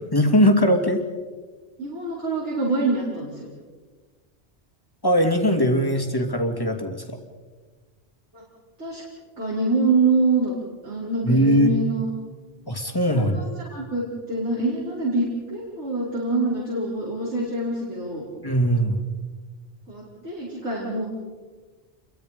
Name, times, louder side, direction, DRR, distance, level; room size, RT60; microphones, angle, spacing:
voice 1, 0.1-1.0 5.0-7.2 11.2-11.7 12.7-13.4 18.4-19.0, equal, 20° left, 4 dB, 2.7 m, -20 dB
voice 2, 1.8-3.5 8.3-8.4 8.8-9.0 9.4-10.5 10.8-12.0 13.1-18.2 19.9-21.1, right 3 dB, 75° right, -7 dB, 5.9 m, -25 dB
29.0 x 23.5 x 5.3 m, 1.4 s
omnidirectional pair, 1.2 m